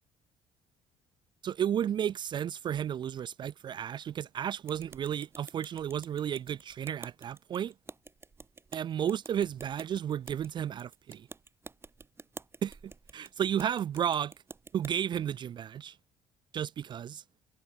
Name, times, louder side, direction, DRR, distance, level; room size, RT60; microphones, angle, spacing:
voice 1, 1.4-7.7 8.7-11.3 12.6-12.8 13.1-14.3 14.7-16.0 16.5-17.2, right 9 dB, 40° right, 0.5 m, -33 dB
sound 1, 4.7-14.9, right 4 dB, 20° right, 4.4 m, -50 dB
cardioid pair, 140°, 12 cm